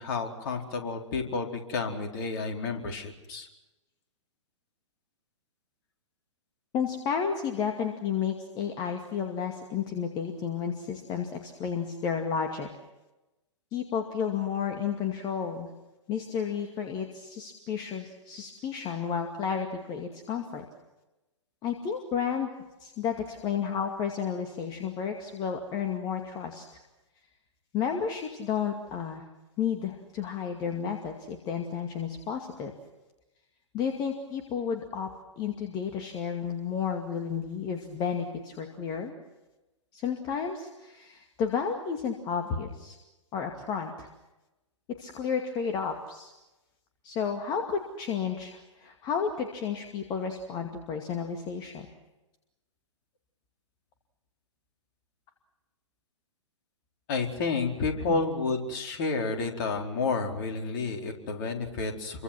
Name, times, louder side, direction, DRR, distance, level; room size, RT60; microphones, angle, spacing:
voice 1, 0.0-3.5 57.1-62.2, left 4 dB, 40° left, 2 dB, 4.5 m, -30 dB
voice 2, 6.7-12.7 13.7-15.7 16.1-20.6 21.6-22.5 22.8-26.8 27.7-29.3 29.6-32.7 33.7-35.1 35.4-39.1 39.9-43.0 43.3-44.1 45.0-46.3 47.0-51.9 58.1-58.2, left 7 dB, 25° left, 4 dB, 2.3 m, -32 dB
29.0 x 24.0 x 6.1 m, 1.0 s
figure-of-eight pair, 115°, 16 cm